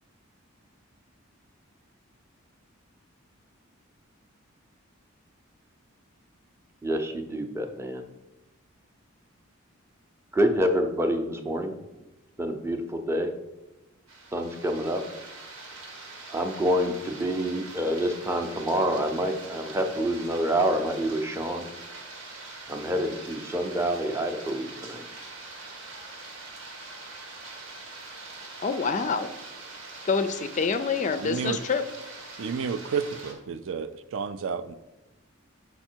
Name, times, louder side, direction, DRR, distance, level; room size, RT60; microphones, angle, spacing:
voice 1, 6.8-8.0 10.3-11.7 12.4-13.3 14.3-15.0 16.3-21.7 22.7-25.0, equal, 10° right, 5 dB, 0.6 m, -27 dB
Rain on leaves ground garden, 14.1-33.3, right 3 dB, 85° right, 1.4 m, -43 dB
voice 2, 28.6-29.3 30.0-31.8, left 5 dB, 35° left, 10 dB, 0.4 m, -26 dB
voice 3, 31.2-31.6 32.4-34.7, right 6 dB, 65° right, 12 dB, 0.4 m, -31 dB
5.7 x 5.0 x 4.4 m, 1.0 s
head